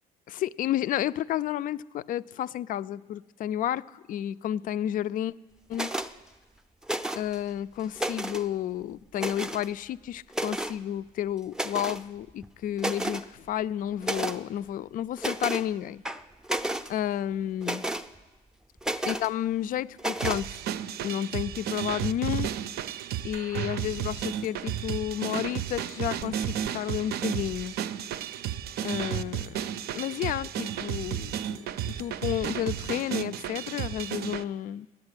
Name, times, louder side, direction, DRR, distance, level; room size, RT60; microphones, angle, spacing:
voice 1, 0.3-5.3 5.7-5.9 7.2-16.0 16.9-17.9 19.1-20.6 21.0-22.5 23.2-27.8 28.8-29.6 29.9-31.6 31.9-34.9, left 11 dB, 55° left, 0.4 m, -31 dB
sound 1, 5.7-6.1 6.8-7.4 7.8-8.5 9.2-9.7 10.3-10.8 11.5-12.0 12.4-12.5 12.8-13.2 14.0-14.4 15.2-15.7 16.0-16.9 17.6-18.1 18.8-19.3 20.0-20.4, right 1 dB, 5° right, 0.5 m, -31 dB
sound 2, 20.2-34.4, right 10 dB, 70° right, 0.5 m, -33 dB
10.5 x 8.2 x 9.7 m
cardioid pair, 110°, 17 cm